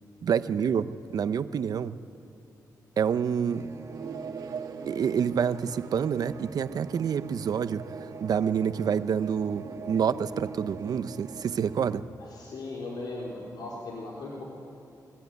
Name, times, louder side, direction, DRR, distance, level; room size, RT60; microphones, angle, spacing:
voice 1, 0.2-2.0 3.0-3.8 4.9-12.1, right 7 dB, 70° right, 12 dB, 0.8 m, -28 dB
sound 1, 3.4-12.0, right 3 dB, 50° right, 1.5 m, -46 dB
space hit, 3.9-11.4, right 6 dB, 85° right, 1.7 m, -43 dB
voice 2, 12.2-14.4, left 2 dB, 90° left, -3 dB, 4.3 m, -38 dB
28.0 x 21.5 x 9.4 m, 2.7 s
wide cardioid pair, 120°, 7 cm